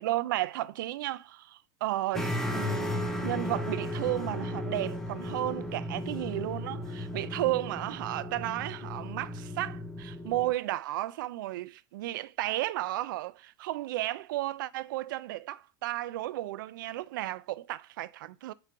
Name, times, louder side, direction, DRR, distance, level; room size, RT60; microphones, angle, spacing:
voice 1, 0.0-18.5, right 16 dB, 80° right, 0.4 m, -33 dB
sound 1, 2.1-10.5, left 1 dB, 5° left, 0.5 m, -35 dB
4.9 x 3.8 x 5.4 m
supercardioid pair, 170°, 11 cm